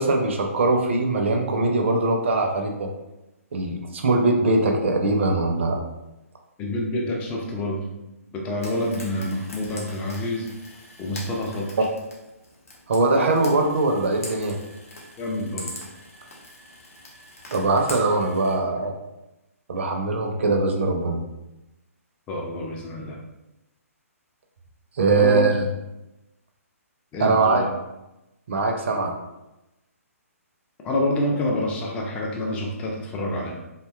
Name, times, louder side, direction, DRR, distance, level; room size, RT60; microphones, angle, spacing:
voice 1, 0.0-2.9 3.5-5.8 12.9-14.6 17.5-18.9 19.7-21.2 25.0-25.6 27.2-27.6 28.5-29.1, right 3 dB, 50° right, 3 dB, 0.4 m, -21 dB
voice 2, 6.6-7.9 8.3-10.5 11.0-11.8 15.2-15.7 22.3-23.2 25.2-25.4 27.1-27.7 30.8-33.6, left 1 dB, 15° left, -1 dB, 0.3 m, -27 dB
Frying (food), 8.6-18.5, left 1 dB, 70° left, 0.8 m, -42 dB
2.6 x 2.2 x 2.2 m, 0.97 s
figure-of-eight pair, 130°, 8 cm